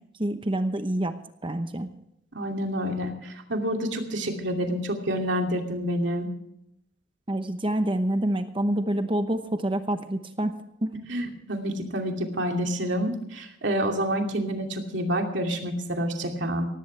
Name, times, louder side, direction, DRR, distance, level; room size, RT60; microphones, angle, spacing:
voice 1, 0.2-1.1 1.4-1.9 7.3-10.5 10.8-10.9, right 1 dB, 25° right, 8 dB, 0.9 m, -27 dB
voice 2, 2.3-6.3 11.1-16.7, equal, 70° right, 3 dB, 2.6 m, -28 dB
18.0 x 16.0 x 3.3 m, 0.78 s
head